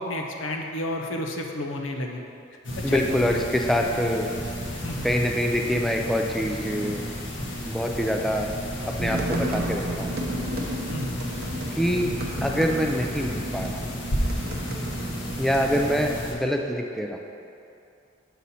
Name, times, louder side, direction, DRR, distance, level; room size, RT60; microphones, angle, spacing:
voice 1, 0.0-2.2 2.9-3.0 4.8-5.1 10.9-11.3, left 1 dB, 85° left, 2 dB, 0.7 m, -31 dB
sound 1, 2.6-16.3, equal, 70° left, 1.0 m, -32 dB
voice 2, 2.8-4.3 5.0-7.0 7.6-8.5 8.8-10.2 11.7-12.1 12.4-14.0 15.4-17.2, equal, ahead, 1 dB, 0.3 m, -25 dB
sound 2, 9.0-15.9, right 1 dB, 55° right, 0.7 m, -33 dB
6.2 x 5.4 x 4.1 m, 2.6 s
head